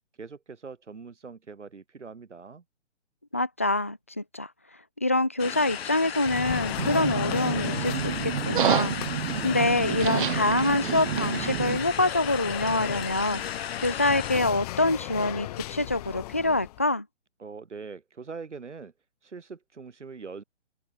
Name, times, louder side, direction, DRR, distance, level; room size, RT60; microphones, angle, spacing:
voice 1, 0.2-2.6 17.4-18.9 19.2-20.4, right 5 dB, 80° right, 7.0 m, -42 dB
voice 2, 3.3-4.5 5.0-9.0 9.4-17.1, left 2 dB, 15° left, 0.3 m, -26 dB
sound 1, 5.4-14.4, left 8 dB, 60° left, 1.9 m, -35 dB
sound 2, 6.2-16.8, left 16 dB, 35° left, 3.5 m, -37 dB
sound 3, 6.8-11.8, right 10 dB, 45° right, 2.4 m, -29 dB
open air
hypercardioid pair, 145°, 35 cm